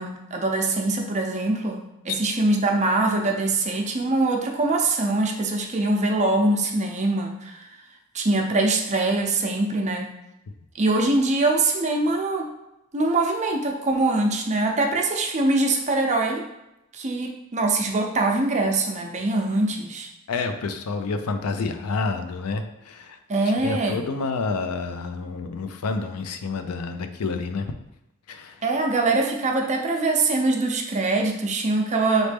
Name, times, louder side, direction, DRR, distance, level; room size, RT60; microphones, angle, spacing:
voice 1, 0.0-7.7 8.1-10.1 10.7-12.5 12.9-16.4 16.9-20.1 23.3-24.0 28.6-32.3, right 2 dB, 35° right, 1 dB, 0.6 m, -23 dB
voice 2, 20.3-23.2 23.5-27.7 28.3-28.6, left 4 dB, 85° left, 8 dB, 0.4 m, -29 dB
4.0 x 3.2 x 3.4 m, 0.90 s
head